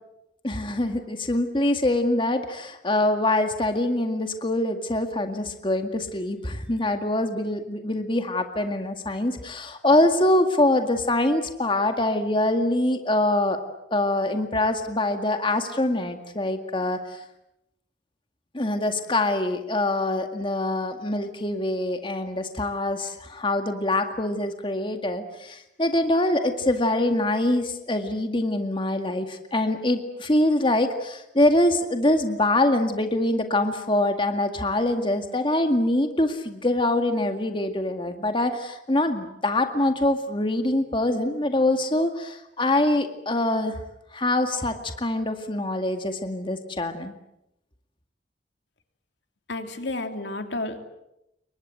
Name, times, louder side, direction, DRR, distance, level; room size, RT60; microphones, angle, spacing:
voice 1, 0.4-13.6 13.9-17.2 18.5-43.8 44.1-47.1, left 1 dB, 30° left, 6 dB, 2.0 m, -24 dB
voice 2, 49.5-50.8, left 2 dB, 85° left, 6 dB, 3.0 m, -31 dB
28.5 x 23.5 x 7.8 m, 0.86 s
head